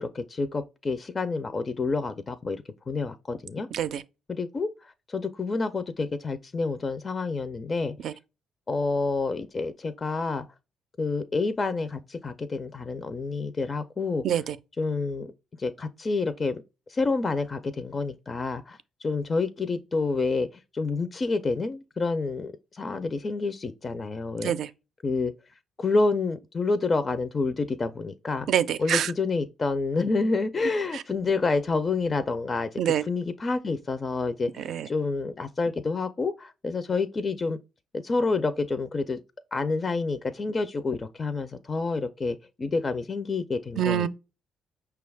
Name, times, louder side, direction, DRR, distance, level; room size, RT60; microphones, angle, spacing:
voice 1, 0.0-3.7 4.3-7.9 8.7-10.4 11.0-14.2 14.8-15.3 15.6-16.6 16.9-20.5 20.7-24.5 25.0-25.3 25.8-28.5 28.8-37.6 37.9-39.2 39.5-44.1, left 3 dB, 30° left, 0.4 m, -28 dB
voice 2, 3.7-4.0 8.0-8.1 14.2-14.6 24.4-24.7 28.5-29.1 30.9-31.0 32.8-33.0 34.7-34.9 43.8-44.1, right 9 dB, 70° right, 0.4 m, -25 dB
5.5 x 2.3 x 3.3 m
cardioid pair, 95°, 0 cm